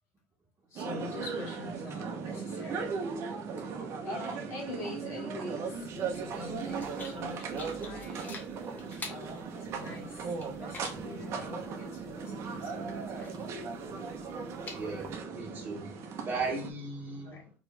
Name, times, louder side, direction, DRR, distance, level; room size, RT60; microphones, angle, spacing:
voice 1, 0.7-2.9 3.8-8.5 9.1-13.4 17.2-17.5, left 3 dB, 50° left, 2.2 m, -44 dB
sound 1, 0.8-16.7, right 5 dB, 50° right, 1.0 m, -38 dB
sound 2, 5.7-15.2, left 3 dB, 30° left, 1.2 m, -49 dB
voice 2, 14.7-15.9 16.2-17.4, right 3 dB, 30° right, 1.3 m, -36 dB
4.6 x 3.4 x 3.4 m
cardioid pair, 135°, 6 cm